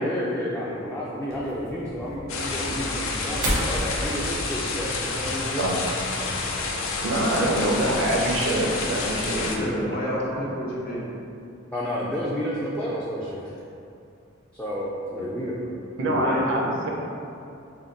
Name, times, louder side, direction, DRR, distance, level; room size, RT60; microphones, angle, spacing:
voice 1, 0.0-5.7 11.7-13.5 14.5-15.5, equal, 5° left, -7 dB, 0.3 m, -30 dB
sound 1, 1.3-8.0, equal, 90° right, 0.9 m, -35 dB
sound 2, 2.3-9.6, left 3 dB, 75° left, 0.4 m, -29 dB
voice 2, 7.0-9.5 16.0-16.9, right 1 dB, 65° right, -1 dB, 0.5 m, -24 dB
voice 3, 9.4-11.0 15.2-15.3 15.6-15.7 16.0-16.6, left 1 dB, 50° left, -5 dB, 0.8 m, -29 dB
3.5 x 2.2 x 3.7 m, 2.6 s
head